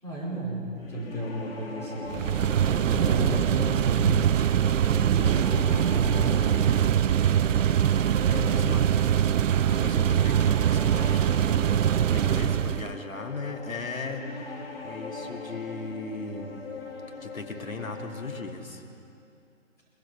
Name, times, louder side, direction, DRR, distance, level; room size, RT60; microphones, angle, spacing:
voice 1, 0.0-2.2 2.6-4.4 4.8-6.9 8.0-9.0, equal, 5° left, -8 dB, 4.9 m, -33 dB
sound 1, 0.8-18.4, left 4 dB, 45° left, 3.2 m, -41 dB
sound 2, 2.1-12.9, right 10 dB, 70° right, 0.5 m, -23 dB
voice 2, 8.3-8.8 9.6-16.6 17.2-18.8, left 3 dB, 90° left, 3 dB, 2.5 m, -38 dB
22.5 x 22.0 x 5.8 m, 2.6 s
figure-of-eight pair, 150°, 39 cm